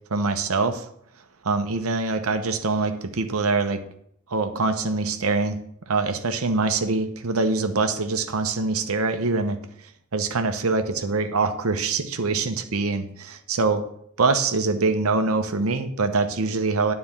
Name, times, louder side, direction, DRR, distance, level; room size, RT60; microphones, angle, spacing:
voice 1, 0.1-0.8 1.4-3.8 4.3-5.6 5.9-9.6 10.1-13.8 14.2-16.9, right 3 dB, 90° right, 8 dB, 0.9 m, -24 dB
9.8 x 4.3 x 7.1 m, 0.71 s
head